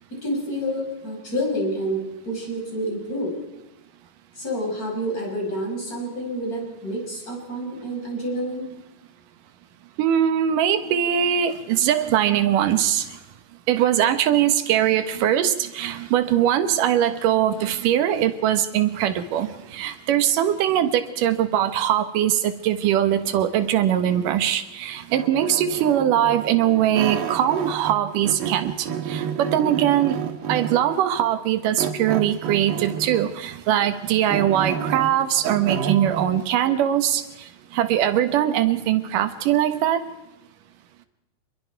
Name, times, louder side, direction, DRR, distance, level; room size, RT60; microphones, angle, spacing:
voice 1, 0.2-3.3 4.3-8.6, equal, 25° left, -1 dB, 6.2 m, -28 dB
voice 2, 10.0-13.1 13.7-30.2 30.5-37.2 37.7-40.0, right 10 dB, 70° right, 9 dB, 2.7 m, -21 dB
sound 1, 25.1-28.0 28.2-30.9 31.8-33.4 33.8-36.3, right 8 dB, 85° right, 3.2 m, -30 dB
27.5 x 21.5 x 4.6 m, 0.97 s
omnidirectional pair, 4.2 m